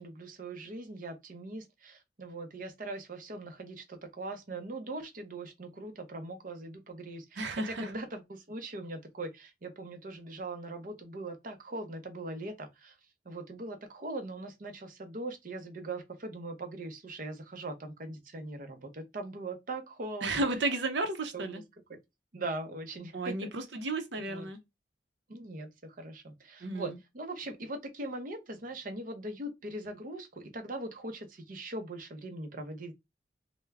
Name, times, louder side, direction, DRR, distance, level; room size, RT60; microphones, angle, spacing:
voice 1, 0.0-12.9 13.3-20.5 21.3-21.6 21.9-22.0 22.3-23.5 24.3-24.5 25.3-32.9, right 2 dB, 50° right, 0.6 m, -41 dB
voice 2, 7.4-7.9 20.2-21.6 23.1-24.6 26.6-26.9, right 2 dB, 85° right, 0.7 m, -33 dB
3.3 x 2.1 x 3.4 m
head